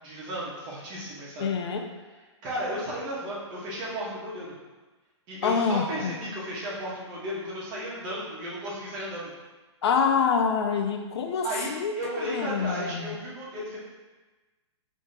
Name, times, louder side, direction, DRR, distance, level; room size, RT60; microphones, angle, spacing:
voice 1, 0.0-1.5 2.4-4.5 5.3-9.3 11.4-11.7 12.0-13.8, right 1 dB, 30° right, -6 dB, 1.4 m, -34 dB
voice 2, 1.4-1.9 5.4-6.2 9.8-12.0 12.2-13.1, left 6 dB, 60° left, 5 dB, 0.4 m, -26 dB
4.9 x 3.2 x 2.9 m, 1.2 s
hypercardioid pair, 150°, 16 cm